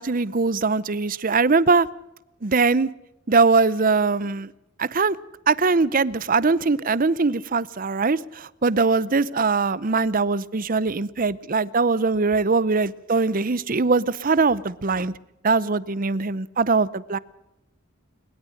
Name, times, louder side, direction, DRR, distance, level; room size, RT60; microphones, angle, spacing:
voice 1, 0.0-1.9 2.4-2.9 3.3-4.5 4.8-5.2 5.5-15.1 15.4-17.2, right 4 dB, 40° right, 19 dB, 0.7 m, -21 dB
21.5 x 21.0 x 6.5 m, 0.90 s
head